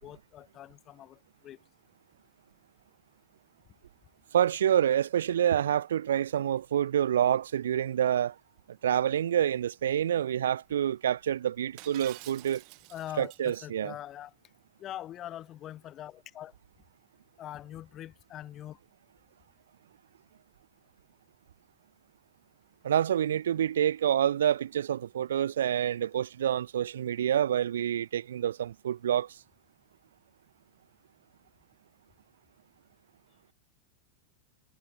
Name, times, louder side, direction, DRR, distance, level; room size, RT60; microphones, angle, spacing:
voice 1, 0.0-1.6 12.9-14.3 14.8-16.5 17.4-18.8, left 12 dB, 30° left, 1.1 m, -43 dB
voice 2, 4.3-8.3 8.7-12.6 13.2-13.9 22.8-29.4, right 10 dB, 65° right, 0.5 m, -27 dB
Shatter, 11.8-13.5, right 34 dB, 45° right, 1.3 m, -48 dB
figure-of-eight pair, 90°, 0 cm